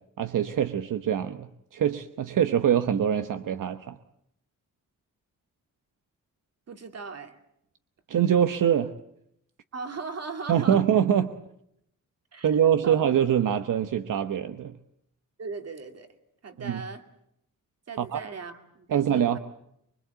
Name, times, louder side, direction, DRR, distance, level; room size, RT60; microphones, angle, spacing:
voice 1, 0.2-4.0 8.1-8.9 10.5-11.3 12.4-14.7 16.6-16.8 18.0-18.2 18.9-19.4, right 9 dB, 75° right, 9 dB, 1.0 m, -24 dB
voice 2, 6.7-7.4 9.7-10.8 12.3-13.0 15.4-16.1 16.4-17.0 17.9-19.4, right 4 dB, 50° right, 6 dB, 2.5 m, -38 dB
25.0 x 24.0 x 8.2 m, 0.76 s
wide cardioid pair, 165°, 32 cm